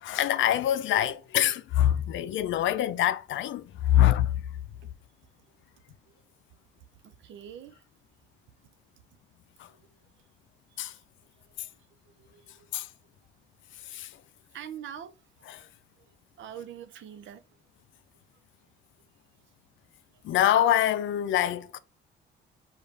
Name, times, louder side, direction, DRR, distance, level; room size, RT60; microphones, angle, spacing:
voice 1, 0.0-4.4 9.6-9.7 10.8-10.9 12.7-12.9 13.9-14.2 15.5-15.6 20.2-21.8, left 12 dB, 75° left, 0.5 m, -25 dB
voice 2, 7.0-7.8 9.7-9.8 10.7-10.9 11.4-12.7 14.5-15.1 15.6-15.7 16.4-17.4, right 9 dB, 75° right, 0.7 m, -45 dB
5.2 x 2.5 x 4.0 m
cardioid pair, 90°, 20 cm